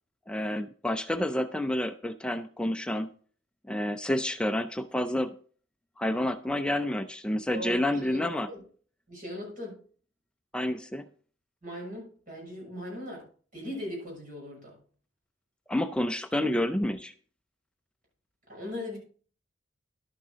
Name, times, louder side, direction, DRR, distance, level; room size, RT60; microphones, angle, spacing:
voice 1, 0.3-3.1 3.7-5.4 6.0-8.5 10.5-11.0 15.7-17.1, left 1 dB, 5° left, 8 dB, 0.4 m, -29 dB
voice 2, 7.5-8.6 9.1-9.8 11.6-13.3 13.5-14.8 18.5-19.0, equal, 40° right, -2 dB, 6.6 m, -39 dB
11.5 x 9.6 x 3.9 m, 0.43 s
head